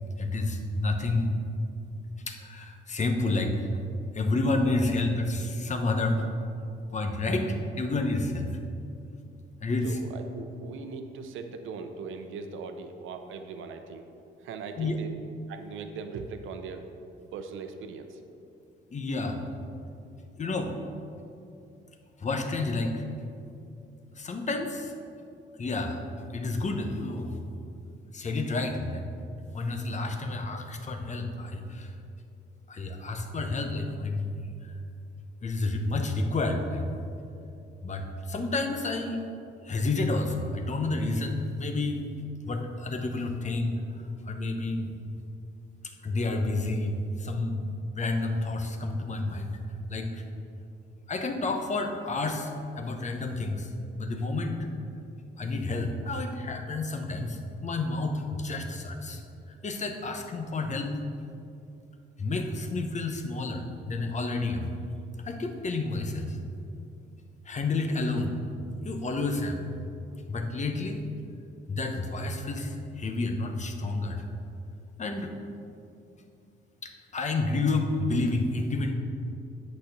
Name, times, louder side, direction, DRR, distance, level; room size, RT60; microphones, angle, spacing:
voice 1, 0.2-1.4 2.3-3.6 4.1-6.3 6.9-8.5 9.6-10.0 14.8-15.0 18.9-19.4 20.4-20.7 22.2-23.0 24.2-24.9 25.6-26.0 26.3-27.4 28.1-29.0 29.5-31.9 32.7-34.7 35.4-36.9 37.8-39.3 39.6-42.1 42.5-43.8 44.3-44.9 46.0-49.6 49.9-50.2 51.1-53.7 54.0-54.7 55.4-59.2 59.6-61.0 62.2-64.7 65.2-66.4 67.5-68.4 68.8-69.6 70.3-71.0 71.7-74.2 75.0-75.3 76.8-78.9, left 2 dB, 35° left, 5 dB, 1.0 m, -30 dB
voice 2, 4.6-4.9 9.8-14.0 14.4-15.1 15.5-16.9 17.3-18.2, right 5 dB, 80° right, 7 dB, 0.7 m, -40 dB
8.3 x 4.3 x 6.7 m, 2.6 s
cardioid pair, 90°, 20 cm